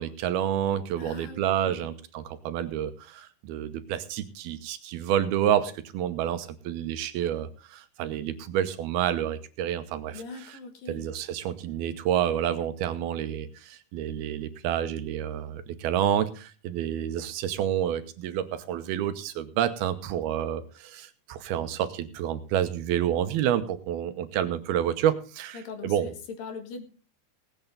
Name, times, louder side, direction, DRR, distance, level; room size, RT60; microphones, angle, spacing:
voice 1, 0.0-10.2 10.9-26.1, right 10 dB, 80° right, 10 dB, 2.8 m, -29 dB
voice 2, 1.0-1.9 10.1-11.1 25.5-26.8, left 4 dB, 65° left, 7 dB, 3.2 m, -41 dB
18.0 x 9.1 x 4.0 m, 0.36 s
omnidirectional pair, 4.5 m